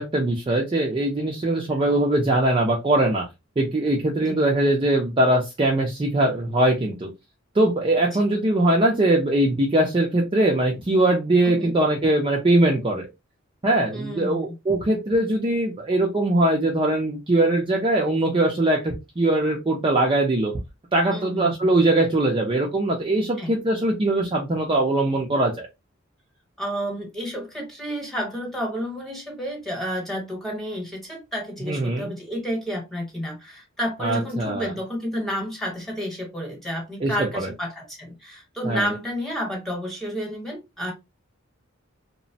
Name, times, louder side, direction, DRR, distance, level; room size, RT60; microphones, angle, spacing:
voice 1, 0.0-3.2 3.6-7.1 7.5-13.1 13.6-20.5 20.9-25.7 31.6-32.1 34.0-34.7 37.0-37.5 38.6-38.9, right 1 dB, 25° right, 0.5 m, -21 dB
voice 2, 13.9-14.5 21.1-21.7 23.4-23.5 26.6-40.9, equal, ahead, 1.1 m, -30 dB
2.9 x 2.0 x 2.7 m
head